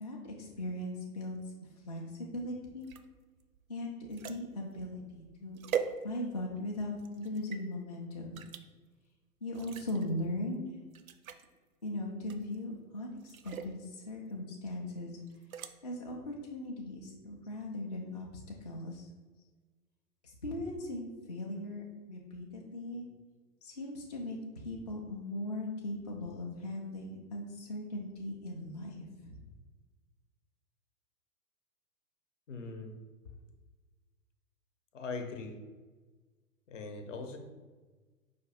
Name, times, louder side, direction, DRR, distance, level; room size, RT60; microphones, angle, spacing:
voice 1, 0.0-1.4 1.9-2.9 3.7-5.6 6.0-8.3 9.4-10.8 11.8-15.2 15.8-18.3 18.6-19.1 20.2-21.8 22.1-23.0 23.6-29.4, left 1 dB, 30° left, -2 dB, 0.3 m, -39 dB
sound 1, 2.8-6.5 7.0-7.6 8.3-8.6 9.5-10.1 10.5-10.6 10.9-11.5 12.3-12.7 13.2-13.8 15.3-15.7, right 8 dB, 65° right, 0.5 m, -41 dB
voice 2, 32.5-32.9 33.2-33.3 34.9-35.6 36.7-37.4, left 4 dB, 55° left, 6 dB, 0.8 m, -41 dB
5.0 x 2.5 x 4.1 m, 1.3 s
figure-of-eight pair, 115°, 46 cm